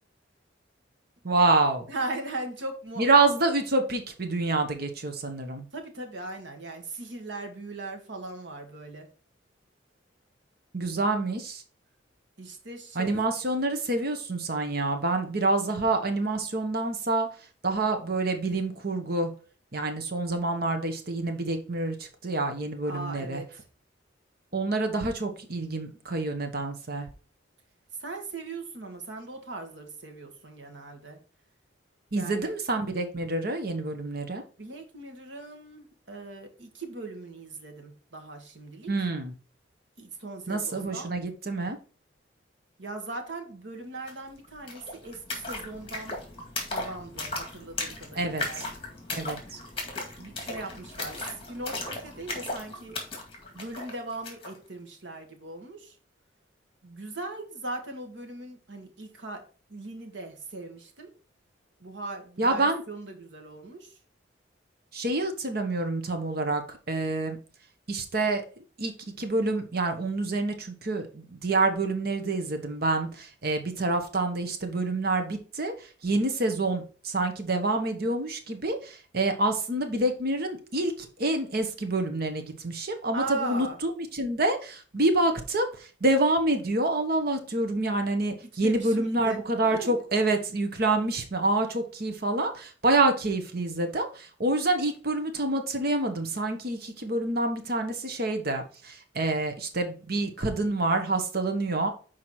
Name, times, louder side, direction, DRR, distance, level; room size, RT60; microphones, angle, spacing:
voice 1, 1.2-1.9 3.0-5.7 10.7-11.6 12.9-17.3 17.6-19.3 19.7-23.4 24.5-27.1 32.1-34.4 38.9-39.3 40.5-41.8 48.1-48.4 49.1-49.6 62.4-62.8 64.9-67.4 67.9-68.4 68.8-101.9, right 2 dB, 55° right, 6 dB, 1.1 m, -27 dB
voice 2, 1.9-3.0 5.7-9.1 12.4-13.2 22.9-23.6 28.0-31.2 32.1-32.5 34.6-38.9 40.0-41.1 42.8-46.2 46.7-48.7 50.2-53.0 53.5-56.0 56.8-59.4 59.7-61.1 61.8-64.0 83.1-83.8 88.4-90.0, right 2 dB, 70° right, 4 dB, 1.7 m, -39 dB
sound 1, 44.1-44.2 44.4-54.6, left 2 dB, 30° left, 2.0 m, -37 dB
6.4 x 4.6 x 4.3 m, 0.39 s
head